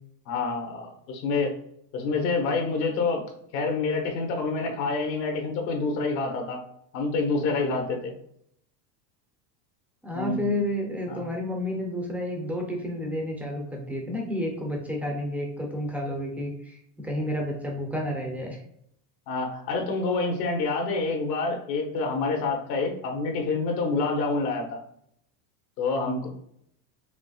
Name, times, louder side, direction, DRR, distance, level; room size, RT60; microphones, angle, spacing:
voice 1, 0.3-1.5 1.9-6.6 6.9-8.1 10.1-10.5 11.1-11.2 19.3-24.8 25.8-26.3, left 3 dB, 80° left, 2 dB, 1.4 m, -27 dB
voice 2, 10.0-18.6, left 1 dB, 5° right, 0 dB, 0.3 m, -30 dB
5.1 x 3.2 x 2.3 m, 0.71 s
supercardioid pair, 130°, 50 cm